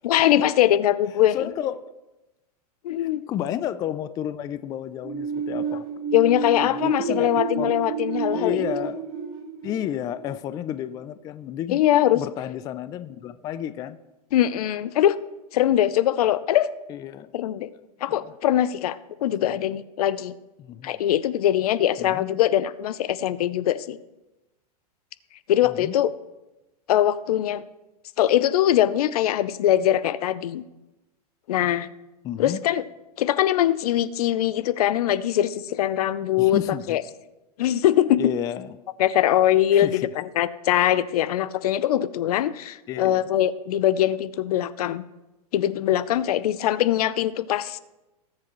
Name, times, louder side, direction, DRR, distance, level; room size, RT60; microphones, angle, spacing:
voice 1, 0.0-1.4 2.8-3.2 6.1-8.6 11.7-12.2 14.3-15.2 15.5-16.7 17.3-17.7 18.0-20.3 20.8-24.0 25.5-26.1 26.9-27.6 28.2-30.6 31.5-31.9 32.4-32.8 33.2-36.6 36.9-37.0 37.6-38.2 39.0-45.0 45.5-47.8, left 12 dB, 70° left, 16 dB, 0.6 m, -22 dB
voice 2, 1.3-1.8 3.0-5.9 6.6-7.7 8.3-9.0 9.6-11.8 12.1-14.0 16.9-17.3 17.7-18.3 19.4-19.8 20.6-21.0 22.0-22.3 25.6-26.0 30.0-30.2 32.2-32.6 36.4-37.0 38.2-38.8 39.7-40.1 42.9-43.3, left 11 dB, 20° left, 13 dB, 0.3 m, -32 dB
sound 1, 5.0-10.7, right 6 dB, 35° right, 4.5 m, -30 dB
19.5 x 7.6 x 3.1 m, 1.0 s
hypercardioid pair, 140°, 20 cm